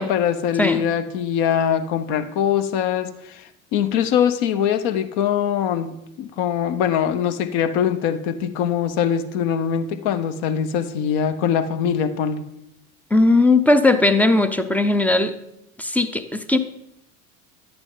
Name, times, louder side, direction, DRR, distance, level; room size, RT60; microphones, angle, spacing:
voice 1, 0.0-12.4, left 8 dB, 55° left, 10 dB, 0.9 m, -22 dB
voice 2, 13.1-15.3 15.8-16.6, left 2 dB, 5° left, 10 dB, 0.5 m, -18 dB
11.0 x 8.8 x 3.9 m, 0.82 s
hypercardioid pair, 75°, 43 cm